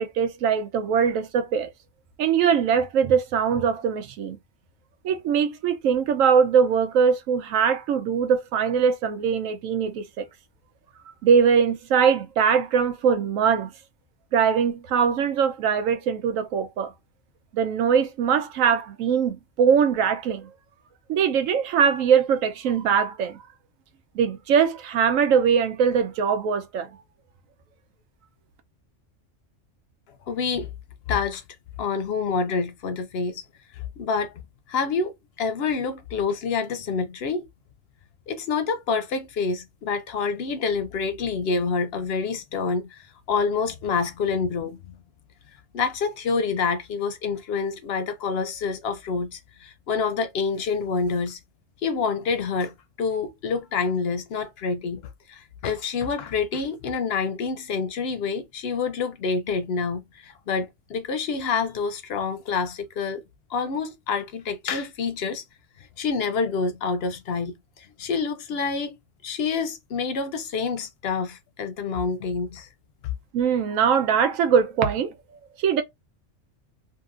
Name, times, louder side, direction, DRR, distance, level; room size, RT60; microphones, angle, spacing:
voice 1, 0.0-1.7 2.2-4.4 5.0-10.2 11.2-13.7 14.3-16.9 17.5-20.5 21.1-23.4 24.1-26.9 73.3-75.8, right 7 dB, 90° right, 1.0 m, -22 dB
voice 2, 30.3-30.7 31.1-31.4 31.8-33.4 33.8-34.4 34.7-37.5 38.3-44.9 45.7-51.4 51.8-55.0 55.3-63.2 63.5-65.4 66.0-69.0 69.2-72.7, left 5 dB, 65° left, 0.7 m, -27 dB
2.8 x 2.7 x 2.4 m
omnidirectional pair, 1.3 m